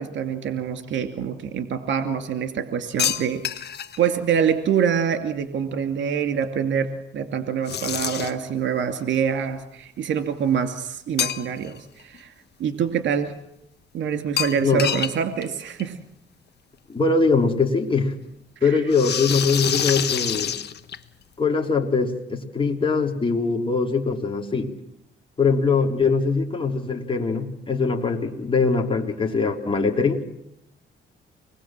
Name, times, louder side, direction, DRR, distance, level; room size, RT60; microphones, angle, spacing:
voice 1, 0.0-3.4 4.0-6.9 7.1-12.3 12.6-13.3 13.9-16.0 18.6-18.8, right 7 dB, 65° right, 8 dB, 2.6 m, -25 dB
sound 1, 3.0-4.0 7.7-8.5 11.2-11.8 12.1-12.2 14.4-15.2 15.4-15.5 15.8-15.9 17.1-17.2 18.9-21.2, left 9 dB, 55° left, 1.5 m, -26 dB
voice 2, 16.9-18.1 18.6-20.5 21.4-24.7 25.4-30.2, left 4 dB, 25° left, 2 dB, 3.5 m, -22 dB
25.5 x 20.5 x 7.5 m, 0.80 s
cardioid pair, 90°, 20 cm